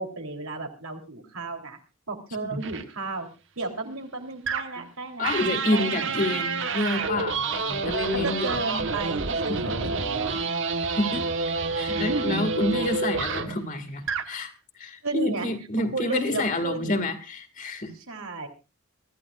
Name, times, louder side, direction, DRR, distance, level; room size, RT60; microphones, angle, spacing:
voice 1, 0.0-1.8 2.1-3.3 3.6-6.3 8.2-10.4 11.9-12.4 15.0-15.5 15.9-17.0 18.1-18.5, right 3 dB, 80° right, 3 dB, 3.4 m, -33 dB
sound 1, 2.6-2.8 4.5-4.9 5.2-13.6 14.0-14.3, right 4 dB, 60° right, 1.4 m, -28 dB
voice 2, 5.2-8.8 9.5-9.9 11.0-11.2 11.8-17.9, left 2 dB, 40° left, 7 dB, 2.3 m, -29 dB
24.0 x 14.0 x 2.5 m, 0.30 s
head